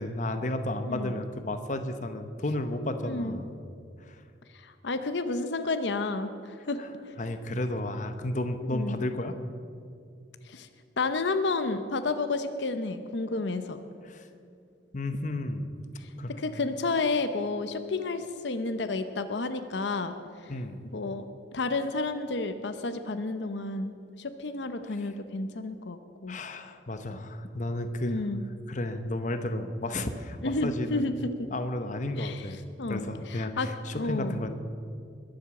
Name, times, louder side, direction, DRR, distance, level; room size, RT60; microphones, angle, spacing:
voice 1, 0.0-3.5 4.1-4.2 6.8-6.9 7.2-9.4 14.0-14.3 14.9-15.7 16.2-16.4 20.5-20.8 26.3-28.2 28.7-31.0 31.5-32.6 32.9-34.5, left 1 dB, 40° left, 8 dB, 0.9 m, -32 dB
voice 2, 0.8-1.2 3.0-3.4 4.6-6.8 8.7-9.0 10.4-10.7 11.0-13.8 16.0-16.1 16.4-20.1 20.4-20.5 20.9-21.3 21.5-26.4 28.0-28.4 30.4-31.5 32.2-32.5 32.8-34.4, left 3 dB, 75° left, 9 dB, 0.8 m, -31 dB
21.0 x 7.9 x 7.1 m, 2.4 s
head